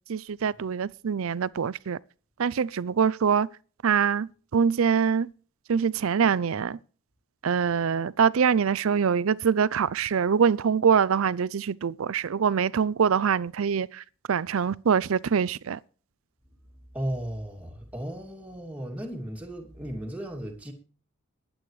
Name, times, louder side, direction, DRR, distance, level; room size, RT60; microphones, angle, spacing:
voice 1, 0.1-2.0 2.4-3.5 3.8-5.3 5.7-6.8 7.4-15.8, right 6 dB, 70° right, 0.4 m, -24 dB
voice 2, 16.9-20.7, right 1 dB, 5° right, 2.5 m, -35 dB
22.0 x 8.7 x 3.2 m
head